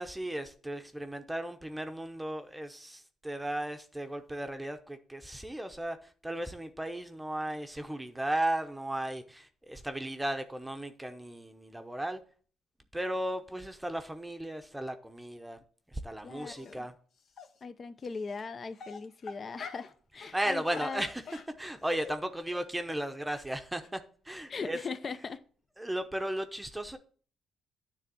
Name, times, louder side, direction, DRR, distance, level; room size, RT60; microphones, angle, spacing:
voice 1, 0.0-12.2 12.9-15.6 15.9-16.9 20.3-21.2 21.6-24.0 24.2-24.8 25.8-27.0, right 1 dB, 10° right, 0.8 m, -35 dB
voice 2, 16.2-16.9 17.6-21.0 24.5-25.4, left 4 dB, 40° left, 0.6 m, -39 dB
Dog, 16.4-16.8 17.4-17.5 18.3-18.4 18.8-19.9 20.2-20.4 20.7-22.2 22.5-22.6 22.9-23.0 23.3-23.4 23.8-23.9 24.3-24.4 24.6-24.7, left 5 dB, 65° left, 1.0 m, -46 dB
9.6 x 3.4 x 6.8 m
cardioid pair, 90°, 0 cm